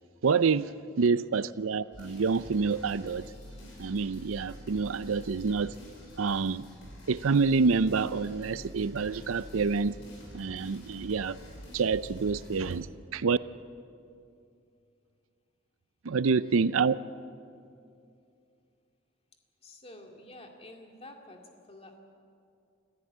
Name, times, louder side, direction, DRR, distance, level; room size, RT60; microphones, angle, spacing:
voice 1, 0.2-0.7 1.0-3.3 3.8-5.7 6.2-6.7 7.1-10.0 10.3-11.4 11.7-13.4 16.0-17.0, right 5 dB, 90° right, 0.6 m, -27 dB
voice 2, 0.7-1.1 14.0-14.1 16.0-16.9 19.6-22.0, left 1 dB, 30° left, 2.3 m, -51 dB
sound 1, 1.9-12.8, equal, 65° left, 7.4 m, -47 dB
26.5 x 14.5 x 8.7 m
head